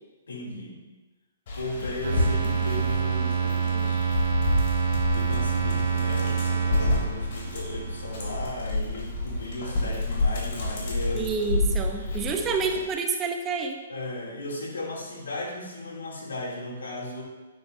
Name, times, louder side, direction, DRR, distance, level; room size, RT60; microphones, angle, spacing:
voice 1, 0.3-0.8 1.5-4.0 5.1-11.3 12.2-12.7 13.9-17.2, left 1 dB, 85° left, -4 dB, 2.8 m, -36 dB
Dog, 1.5-12.8, left 2 dB, 55° left, 3.0 m, -29 dB
sound 1, 2.0-8.5, right 6 dB, 65° right, 2.5 m, -27 dB
voice 2, 11.1-13.8, right 5 dB, 20° right, 4 dB, 0.9 m, -28 dB
9.4 x 9.3 x 2.7 m, 1.2 s
hypercardioid pair, 145°, 0 cm